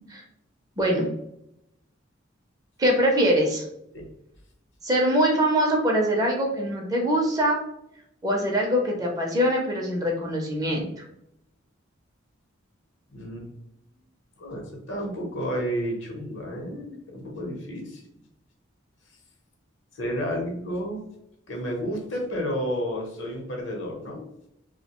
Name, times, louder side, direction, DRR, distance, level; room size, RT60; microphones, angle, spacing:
voice 1, 0.8-1.1 2.8-3.7 4.8-7.6 8.2-10.9, equal, 20° right, -1 dB, 0.5 m, -23 dB
voice 2, 13.1-13.5 14.4-14.6 14.9-18.0 19.9-21.0 21.5-24.3, equal, 65° left, 0 dB, 0.7 m, -31 dB
2.6 x 2.1 x 2.8 m, 0.81 s
head